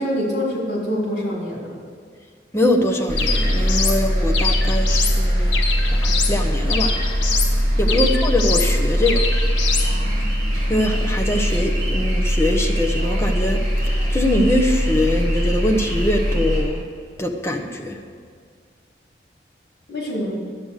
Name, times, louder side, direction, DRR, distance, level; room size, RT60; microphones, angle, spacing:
voice 1, 0.0-1.7 7.9-8.0 9.8-10.1 19.9-20.4, equal, 65° left, -3 dB, 3.6 m, -25 dB
voice 2, 2.5-5.6 5.9-7.0 7.8-9.3 10.7-16.9 17.2-18.0, left 1 dB, 15° left, 2 dB, 0.9 m, -23 dB
sound 1, 3.1-16.6, equal, 45° right, 3.2 m, -21 dB
sound 2, 3.2-4.0 4.3-5.2 5.5-6.4 6.7-7.5 7.9-8.7 9.1-9.9, left 5 dB, 85° left, 1.2 m, -25 dB
11.5 x 7.9 x 6.5 m, 2.1 s
head